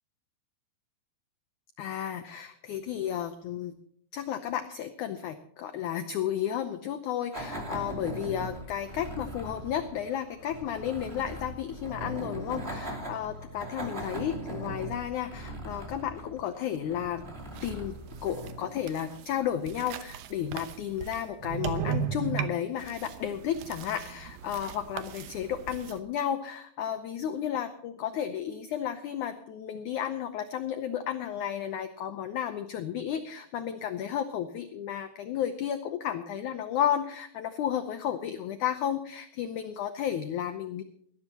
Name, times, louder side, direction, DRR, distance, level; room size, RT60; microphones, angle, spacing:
voice 1, 1.8-3.7 4.1-17.2 17.6-40.8, left 9 dB, 75° left, 9 dB, 1.8 m, -33 dB
sound 1, 7.3-19.5, right 1 dB, 20° right, 2.3 m, -40 dB
sound 2, 17.4-26.0, right 8 dB, 75° right, 2.5 m, -37 dB
20.0 x 15.5 x 2.9 m, 0.66 s
omnidirectional pair, 4.4 m